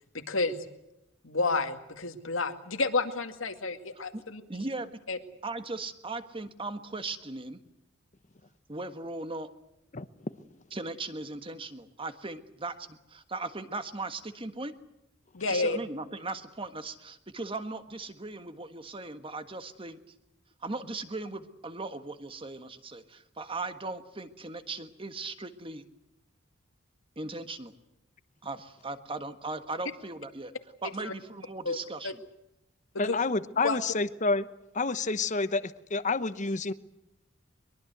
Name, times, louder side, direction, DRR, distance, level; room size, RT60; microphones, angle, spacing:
voice 1, 0.1-0.7 1.2-4.4 5.1-5.2 15.3-15.8 31.0-31.1 31.7-31.8 32.0-32.1 33.0-33.2 33.6-33.8, left 3 dB, 75° left, 7 dB, 2.2 m, -30 dB
voice 2, 4.5-4.9 5.4-7.6 8.7-9.5 10.7-14.7 15.5-20.0 20.6-25.8 27.1-27.7 28.4-30.5 30.8-32.2, right 3 dB, 25° right, 9 dB, 1.5 m, -38 dB
voice 3, 33.0-34.5 34.7-36.7, left 3 dB, 35° left, 13 dB, 1.0 m, -29 dB
23.0 x 22.5 x 8.0 m, 0.90 s
head